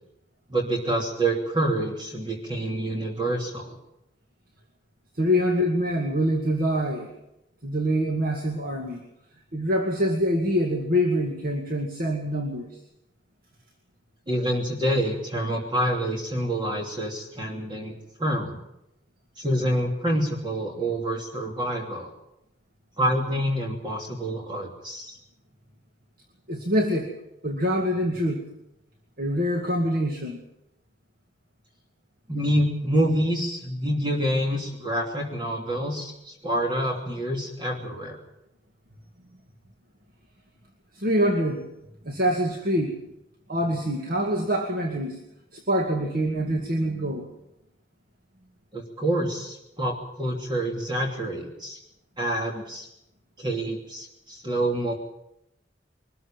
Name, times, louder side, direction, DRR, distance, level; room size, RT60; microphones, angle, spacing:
voice 1, 0.5-3.8 14.3-18.6 19.4-22.1 23.0-25.2 32.3-38.2 48.7-51.8 52.2-52.9 53.4-54.9, right 1 dB, 25° right, 0 dB, 2.9 m, -27 dB
voice 2, 5.2-7.1 7.6-9.0 9.5-12.7 26.5-27.1 27.4-28.4 29.2-30.4 40.9-41.7 42.0-43.0 43.5-45.2 45.5-47.3, equal, 55° right, 2 dB, 2.3 m, -25 dB
23.0 x 14.0 x 9.1 m, 0.86 s
head